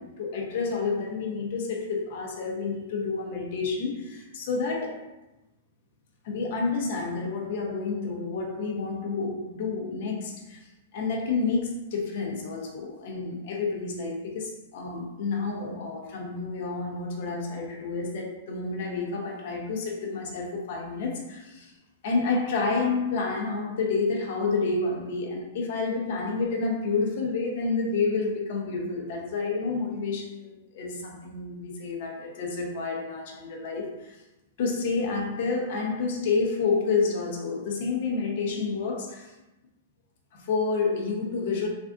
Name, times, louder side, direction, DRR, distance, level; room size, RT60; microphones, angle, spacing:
voice 1, 0.0-5.0 6.2-10.6 10.9-21.7 22.0-34.2 34.6-39.3 40.3-41.7, left 4 dB, 50° left, 0 dB, 0.7 m, -29 dB
3.4 x 2.4 x 2.5 m, 1.0 s
supercardioid pair, 165°, 0 cm